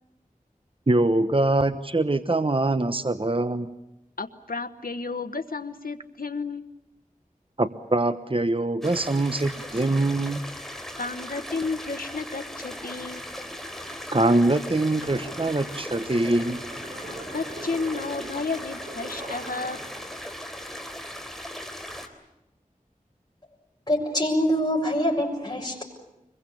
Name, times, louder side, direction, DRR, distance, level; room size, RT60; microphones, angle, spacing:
voice 1, 0.9-3.7 7.6-10.4 14.1-16.6, right 2 dB, 40° right, 10 dB, 1.1 m, -23 dB
voice 2, 4.2-6.7 11.0-13.2 17.3-19.8, left 4 dB, 80° left, 7 dB, 1.2 m, -32 dB
sound 1, 8.8-22.1, equal, ahead, 3.5 m, -38 dB
sound 2, 12.6-20.2, right 1 dB, 65° right, 7.7 m, -43 dB
voice 3, 23.9-25.8, equal, 25° left, -2 dB, 6.8 m, -24 dB
26.0 x 22.0 x 8.6 m, 0.91 s
wide cardioid pair, 50°, 15 cm